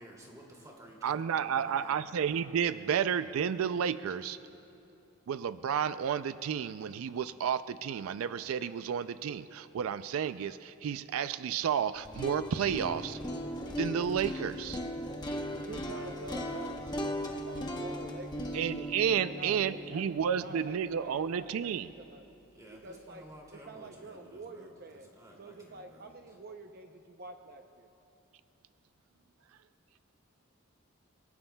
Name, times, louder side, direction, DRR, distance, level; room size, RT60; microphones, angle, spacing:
voice 1, 0.0-2.0 22.5-26.1, right 1 dB, 15° right, -2 dB, 2.5 m, -53 dB
voice 2, 1.0-4.4 5.3-13.2 13.8-14.8 18.5-21.9, right 8 dB, 90° right, 13 dB, 0.4 m, -31 dB
sound 1, 12.0-22.0, equal, 20° left, 1.0 m, -38 dB
voice 3, 15.5-17.0 17.3-18.6 19.1-22.3 22.8-23.3 23.5-25.1 25.4-27.9, right 2 dB, 45° right, 5 dB, 0.6 m, -47 dB
29.5 x 18.0 x 2.2 m, 2.8 s
head